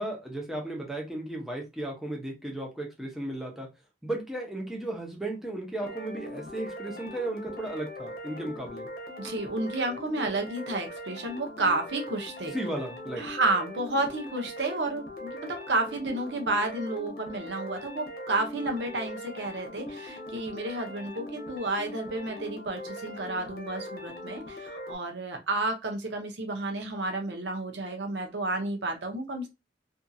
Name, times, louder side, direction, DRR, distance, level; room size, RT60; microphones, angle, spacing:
voice 1, 0.0-3.7 4.0-8.9 12.5-13.2, right 1 dB, ahead, -1 dB, 0.7 m, -35 dB
sound 1, 5.8-25.0, left 1 dB, 60° left, 0.8 m, -41 dB
voice 2, 9.2-12.5 13.2-29.5, right 2 dB, 75° right, 3 dB, 0.7 m, -31 dB
2.6 x 2.6 x 2.3 m, 0.25 s
head